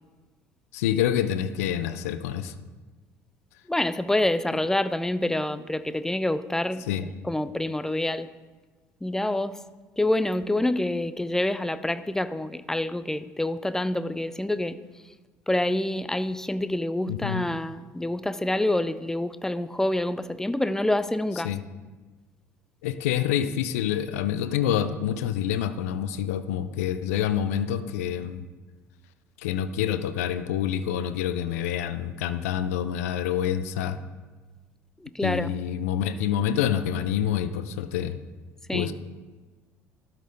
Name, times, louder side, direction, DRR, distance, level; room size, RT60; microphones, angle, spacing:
voice 1, 0.7-2.5 6.9-7.1 17.1-17.5 21.4-21.6 22.8-28.4 29.4-34.0 35.2-38.2 38.7-38.9, left 10 dB, 75° left, 12 dB, 0.3 m, -27 dB
voice 2, 3.7-6.8 7.2-8.3 9.0-9.6 10.0-14.8 15.5-21.5 35.0-35.5 38.7-38.9, left 1 dB, 5° left, 14 dB, 0.4 m, -27 dB
12.5 x 4.3 x 3.9 m, 1.3 s
hypercardioid pair, 55°, 8 cm